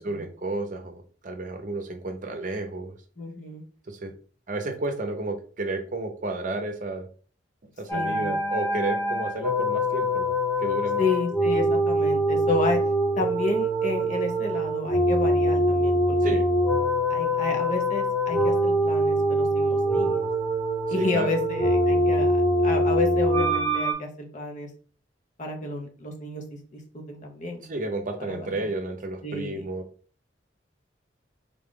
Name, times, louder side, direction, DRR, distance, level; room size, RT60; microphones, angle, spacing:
voice 1, 0.0-2.9 3.9-4.1 4.5-7.1 7.8-10.3 10.6-11.0 16.2-16.4 20.9-21.3 27.7-29.8, right 2 dB, 45° right, 5 dB, 0.7 m, -32 dB
voice 2, 3.2-3.6 7.9-8.3 11.0-12.8 13.2-16.4 17.1-20.3 20.9-24.7 25.4-26.4 26.7-27.6 28.3-28.6 29.2-29.7, left 3 dB, 40° left, 3 dB, 0.8 m, -31 dB
sound 1, 7.9-23.9, equal, 10° left, 1.1 m, -24 dB
3.7 x 2.4 x 3.6 m, 0.41 s
head